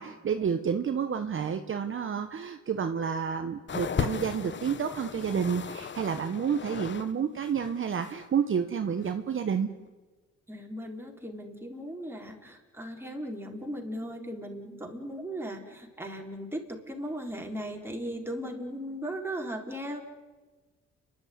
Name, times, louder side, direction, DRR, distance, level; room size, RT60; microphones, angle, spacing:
voice 1, 0.0-9.7, right 7 dB, 40° right, 7 dB, 1.3 m, -30 dB
sound 1, 3.7-7.1 7.4-8.3 9.0-9.1, left 7 dB, 40° left, 1.0 m, -36 dB
voice 2, 10.5-20.0, equal, 10° right, 1 dB, 4.4 m, -37 dB
30.0 x 12.0 x 9.6 m, 1.3 s
cardioid pair, 90°, 30 cm